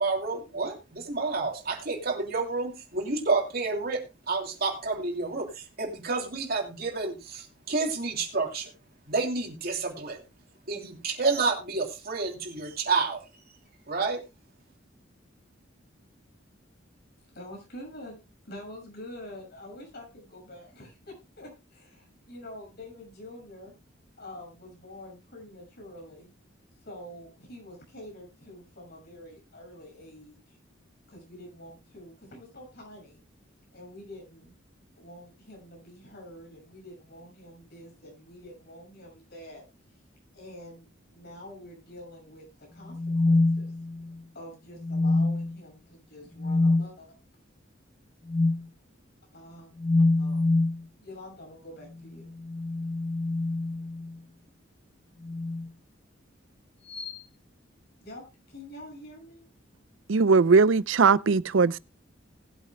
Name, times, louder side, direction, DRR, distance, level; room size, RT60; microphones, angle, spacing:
voice 1, 0.0-8.7 9.1-10.2 10.7-13.2 13.9-14.2, right 4 dB, 55° right, 3.0 m, -29 dB
voice 2, 17.3-18.2 18.5-23.7 24.2-26.3 26.8-30.6 31.1-33.2 33.7-34.5 35.0-39.6 40.3-42.5 42.7-43.7 44.3-47.1 49.3-49.7 50.2-50.7 51.0-52.3 58.0-58.2 58.5-59.5, left 1 dB, 55° left, 6.9 m, -46 dB
sound 1, 42.9-44.2 44.8-45.6 46.4-46.9 48.3-48.6 49.8-50.8 52.3-54.2 55.2-55.7 56.9-57.2, left 2 dB, 30° left, 0.8 m, -25 dB
voice 3, 60.1-61.8, right 4 dB, 80° right, 0.5 m, -20 dB
19.5 x 8.4 x 2.2 m
head